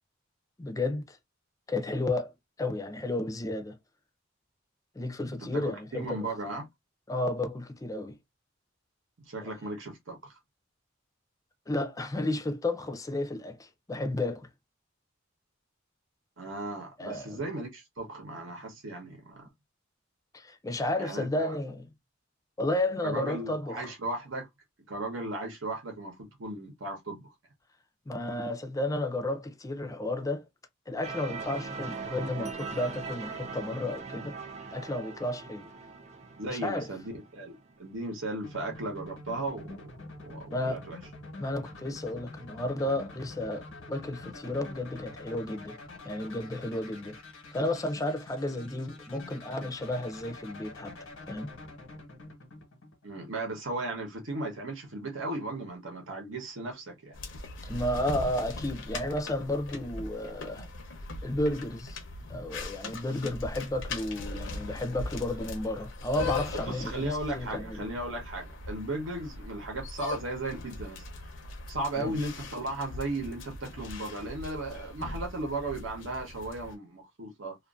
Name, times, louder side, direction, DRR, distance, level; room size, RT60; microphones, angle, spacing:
voice 1, 0.6-1.2 1.7-2.3 2.6-3.8 5.0-6.3 7.1-8.2 9.4-9.5 11.7-14.5 17.0-17.5 20.3-21.9 22.6-23.9 28.1-30.5 30.9-34.4 34.7-35.6 36.5-36.9 40.5-40.9 41.4-45.8 46.0-47.2 47.5-51.0 51.3-51.5 57.6-60.7 61.2-62.0 62.3-67.9 72.0-72.2, left 1 dB, 15° left, 0.4 m, -32 dB
voice 2, 5.5-6.7 9.2-10.2 16.4-19.5 21.0-21.5 23.0-24.5 24.9-27.3 36.4-39.9 40.2-41.0 53.0-57.2 66.7-71.0 71.7-77.5, right 2 dB, 75° right, 0.9 m, -36 dB
sound 1, 31.0-37.8, right 4 dB, 35° right, 0.5 m, -41 dB
sound 2, 38.4-53.4, left 2 dB, 85° left, 1.0 m, -46 dB
sound 3, 57.1-76.7, left 3 dB, 70° left, 0.7 m, -40 dB
2.5 x 2.4 x 2.4 m
head